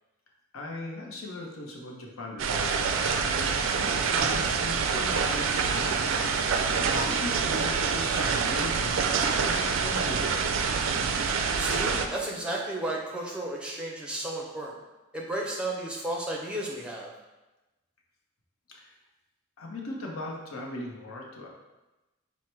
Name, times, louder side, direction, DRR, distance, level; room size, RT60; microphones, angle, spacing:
voice 1, 0.5-10.2 18.7-18.9 19.6-21.5, left 1 dB, 75° left, -1 dB, 0.8 m, -39 dB
sound 1, 2.4-12.1, right 5 dB, 65° right, 0.3 m, -26 dB
voice 2, 11.6-14.7 15.1-17.1, right 1 dB, 5° right, -2 dB, 0.5 m, -33 dB
4.6 x 2.1 x 4.4 m, 1.1 s
head